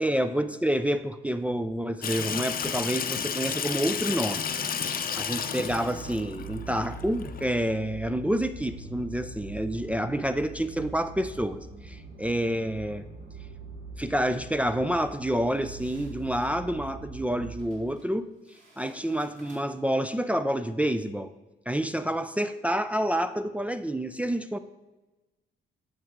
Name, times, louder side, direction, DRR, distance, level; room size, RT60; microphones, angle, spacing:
voice 1, 0.0-4.5 4.8-13.1 14.0-18.3 18.8-21.3 21.7-24.6, right 1 dB, 5° right, 8 dB, 0.3 m, -28 dB
Water tap faucet / Sink (filling or washing), 2.0-7.4, left 7 dB, 45° left, 0.6 m, -32 dB
sound 1, 5.6-17.5, right 2 dB, 60° right, 1.2 m, -43 dB
sound 2, 15.4-16.5 17.6-18.1 18.4-19.9, right 2 dB, 35° right, 2.4 m, -54 dB
8.5 x 6.8 x 3.7 m, 1.1 s
cardioid pair, 90°, 20 cm